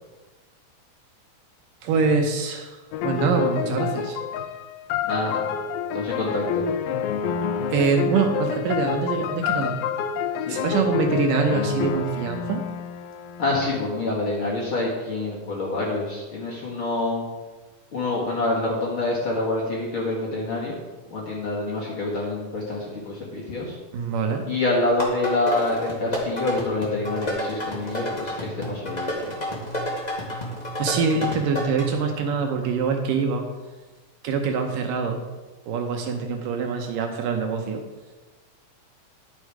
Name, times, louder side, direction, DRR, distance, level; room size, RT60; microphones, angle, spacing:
voice 1, 1.8-2.8 3.0-4.2 7.7-9.7 10.5-12.6 23.9-24.5 30.8-33.4 34.2-35.2 35.7-37.8, right 5 dB, 75° right, 4 dB, 2.4 m, -24 dB
sound 1, 2.9-14.1, left 7 dB, 85° left, 2.4 m, -28 dB
voice 2, 5.0-5.5 5.9-6.6 10.5-10.6 13.4-17.2 17.9-20.8 21.1-23.8 24.5-29.4, left 2 dB, 45° left, -4 dB, 2.0 m, -26 dB
sound 2, 25.0-31.9, equal, 25° left, 0.9 m, -30 dB
11.0 x 6.5 x 4.8 m, 1.2 s
omnidirectional pair, 4.2 m